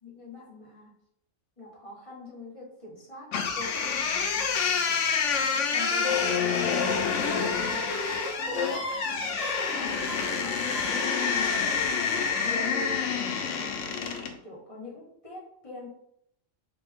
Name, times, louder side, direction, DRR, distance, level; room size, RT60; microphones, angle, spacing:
voice 1, 0.0-0.9 1.6-6.4 8.4-11.5 12.2-13.1 13.6-15.9, left 2 dB, 25° left, -4 dB, 1.5 m, -44 dB
sound 1, 3.3-14.4, left 6 dB, 75° left, 0.9 m, -27 dB
sound 2, 5.7-11.1, right 4 dB, 85° right, 1.0 m, -40 dB
3.5 x 3.3 x 3.5 m, 0.73 s
omnidirectional pair, 1.3 m